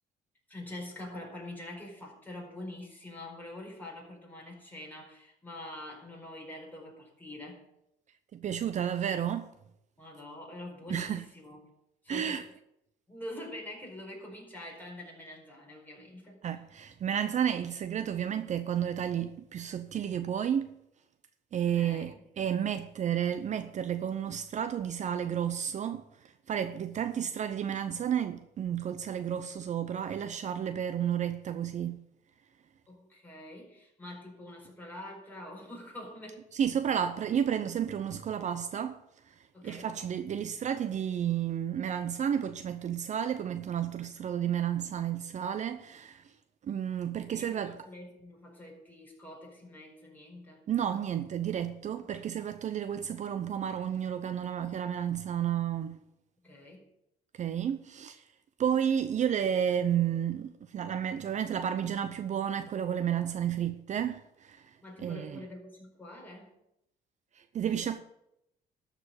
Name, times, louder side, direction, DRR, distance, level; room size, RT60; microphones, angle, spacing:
voice 1, 0.5-7.6 10.0-11.6 12.0-12.4 13.1-16.4 21.7-22.2 32.9-36.4 39.5-39.9 47.2-50.6 52.0-52.3 56.4-56.9 64.8-66.5, left 1 dB, 10° left, 4.6 m, -45 dB
voice 2, 8.3-9.5 10.9-11.2 12.1-12.4 16.4-20.8 21.5-32.0 36.5-39.0 39.3-39.4 39.6-46.3 46.6-47.8 50.7-56.0 57.3-58.2 58.6-64.7 65.0-65.4 67.3-68.0, right 9 dB, 45° right, 0.6 m, -31 dB
13.0 x 5.1 x 8.9 m
cardioid pair, 110°, 17 cm